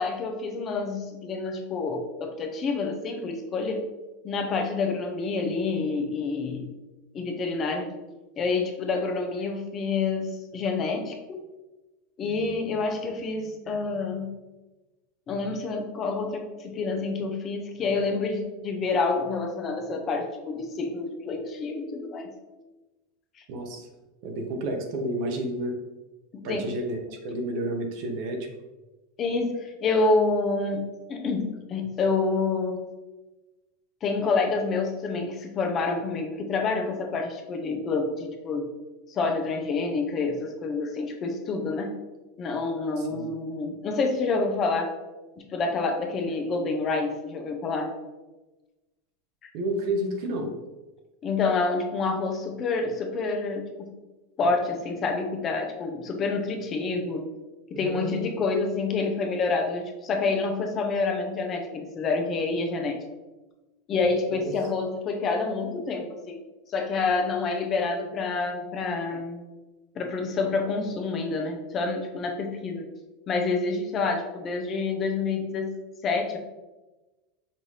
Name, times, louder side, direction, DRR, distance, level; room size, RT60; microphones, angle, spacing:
voice 1, 0.0-3.8 4.2-6.7 7.1-7.9 8.4-11.4 12.2-14.3 15.3-22.3 23.4-23.5 26.3-26.7 29.2-32.8 34.0-38.7 39.1-41.9 42.4-44.9 45.4-47.9 49.4-49.5 51.2-53.9 54.4-57.3 57.7-63.0 63.9-66.4 66.7-69.4 69.9-72.9 73.3-75.7 76.0-76.4, left 3 dB, 30° left, 4 dB, 0.6 m, -28 dB
voice 2, 23.5-23.9 24.2-25.7 26.4-27.0 27.2-28.5 43.1-43.3 49.5-50.5 57.7-58.3 64.3-64.5, right 1 dB, 55° right, 4 dB, 0.8 m, -30 dB
5.3 x 2.7 x 3.2 m, 1.1 s
supercardioid pair, 135°, 0 cm